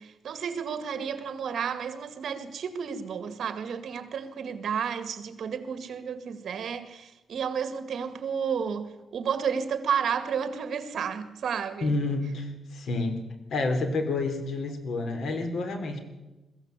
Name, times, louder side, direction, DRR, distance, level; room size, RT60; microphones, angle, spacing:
voice 1, 0.0-11.9, right 7 dB, 60° right, 2.0 m, -32 dB
voice 2, 11.8-13.2 13.5-16.0, left 2 dB, 70° left, 3.6 m, -29 dB
21.5 x 15.0 x 8.3 m
wide cardioid pair, 150°, 0 cm